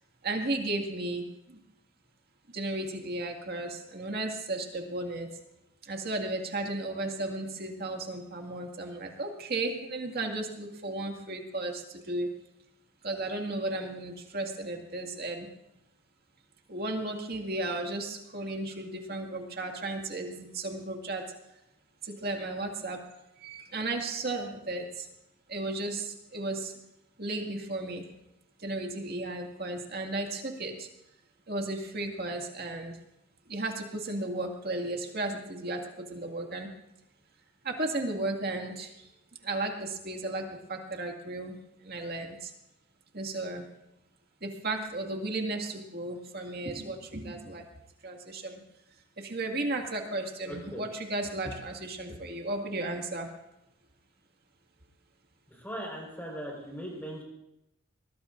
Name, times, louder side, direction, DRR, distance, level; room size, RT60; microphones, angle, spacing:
voice 1, 0.2-1.2 1.5-1.6 2.5-5.3 5.8-12.3 13.0-15.5 16.7-21.2 22.0-23.0 23.4-25.1 25.5-26.7 27.2-28.1 28.6-30.9 31.5-33.0 33.5-35.8 36.1-36.7 37.6-38.9 39.4-41.6 41.8-42.5 43.1-43.6 44.4-47.6 48.0-48.6 49.2-53.3, right 2 dB, 45° right, 3 dB, 2.1 m, -34 dB
voice 2, 50.4-50.8 55.5-57.2, right 1 dB, 10° left, -1 dB, 4.7 m, -39 dB
22.5 x 20.5 x 2.6 m, 0.91 s
head